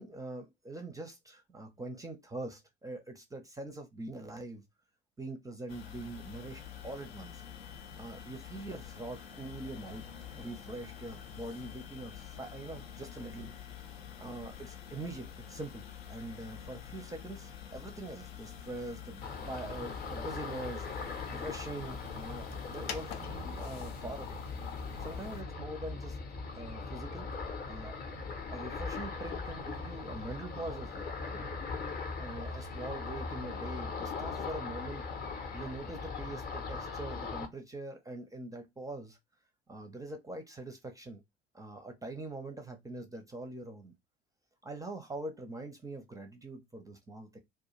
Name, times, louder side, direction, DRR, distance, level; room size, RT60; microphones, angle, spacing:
voice 1, 0.0-4.6 5.2-7.4 8.0-10.0 10.4-13.5 14.2-20.9 21.3-24.4 25.0-26.2 26.5-27.3 27.6-28.0 28.5-31.5 32.2-35.1 35.5-39.2 39.7-41.2 41.5-43.9 44.6-47.4, right 2 dB, 10° right, 0.5 m, -43 dB
sound 1, 5.7-25.4, left 8 dB, 75° left, 0.5 m, -47 dB
Ocean, 19.2-37.5, left 4 dB, 30° left, 0.6 m, -40 dB
2.3 x 2.2 x 3.0 m
figure-of-eight pair, 60°, 31 cm